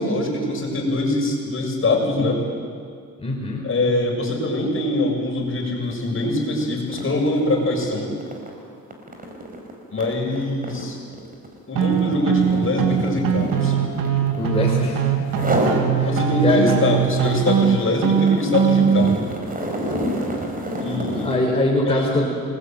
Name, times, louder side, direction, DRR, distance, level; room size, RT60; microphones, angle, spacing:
voice 1, 0.0-2.4 3.6-8.1 9.9-11.0 11.7-13.7 16.0-19.2 20.8-21.4 21.9-22.1, left 2 dB, 40° left, 1 dB, 7.1 m, -23 dB
voice 2, 3.2-3.7 14.4-15.0 15.6-15.7 16.0-16.1 16.4-16.9 20.8-22.3, left 1 dB, 20° left, -2 dB, 5.3 m, -23 dB
sound 1, 5.8-6.0 6.4-14.8 15.3-15.9 16.3-21.5, right 1 dB, 25° right, 5.2 m, -29 dB
sound 2, 11.8-19.2, right 8 dB, 90° right, 2.7 m, -21 dB
28.0 x 20.5 x 9.2 m, 2.2 s
cardioid pair, 95°, 32 cm